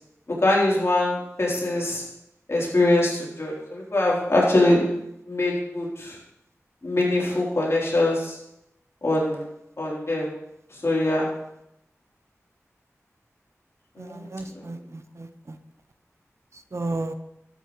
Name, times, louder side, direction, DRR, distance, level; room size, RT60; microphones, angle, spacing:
voice 1, 0.4-2.0 2.5-4.8 5.3-6.2 6.8-8.4 9.0-9.4 9.8-10.3 10.8-11.3 14.0-14.2, left 2 dB, 55° left, -4 dB, 3.9 m, -23 dB
voice 2, 14.0-15.6 16.7-17.1, right 2 dB, 60° right, 8 dB, 0.9 m, -33 dB
12.5 x 10.0 x 3.3 m, 0.82 s
wide cardioid pair, 50°, 5 cm